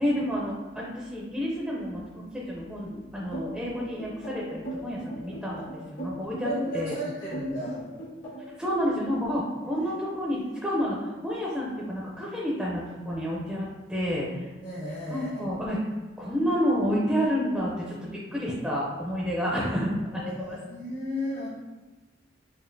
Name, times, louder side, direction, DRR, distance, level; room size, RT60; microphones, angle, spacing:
voice 1, 0.0-7.0 8.6-14.5 15.1-15.8 16.2-20.6, equal, 5° right, -5 dB, 0.5 m, -30 dB
sound 1, 3.3-8.6, right 2 dB, 90° left, 1.5 m, -37 dB
voice 2, 6.4-7.8 9.8-9.9 14.6-15.4 20.1-21.5, left 1 dB, 50° left, -7 dB, 0.8 m, -34 dB
5.0 x 2.4 x 2.6 m, 1.2 s
head